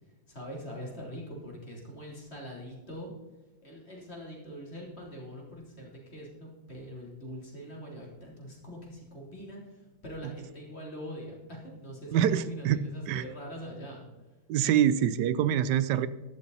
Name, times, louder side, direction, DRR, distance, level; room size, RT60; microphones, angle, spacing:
voice 1, 0.0-3.1 3.6-14.1, equal, 40° left, -2 dB, 3.6 m, -43 dB
voice 2, 12.1-12.8 13.1-13.2 14.5-16.1, right 10 dB, 85° right, 15 dB, 1.3 m, -25 dB
13.5 x 11.0 x 4.1 m, 1.2 s
omnidirectional pair, 1.8 m